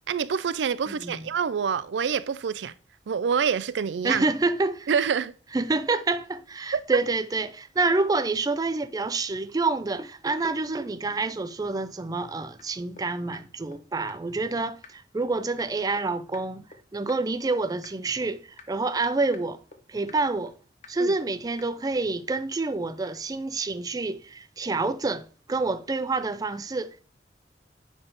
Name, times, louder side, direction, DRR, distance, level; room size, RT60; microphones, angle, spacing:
voice 1, 0.1-2.7 3.1-4.3 4.9-5.3 6.7-6.8 21.0-21.1, right 7 dB, 90° right, 0.4 m, -26 dB
voice 2, 0.9-1.2 4.0-4.9 5.5-16.6 16.9-19.6 19.9-20.5 20.9-27.0, right 3 dB, 20° right, 0.4 m, -28 dB
sound 1, 12.6-12.7 13.0-13.1 13.3-13.4 13.7-13.8 14.1-14.2 14.5-14.6 14.8-14.9 15.2-15.3 15.6-15.7 16.0-16.1 16.3-16.4 16.7-16.8 17.1-17.2 17.5-17.6 17.8-17.9 18.2-18.3 18.6-18.7 19.0-19.1 19.3-19.4 19.7-19.8 20.1-20.2 20.5-20.6 20.8-20.9 21.2-21.3 21.6-21.7 22.0-22.1 22.3-22.4, left 4 dB, 40° left, 0.9 m, -46 dB
9.6 x 3.6 x 3.9 m
head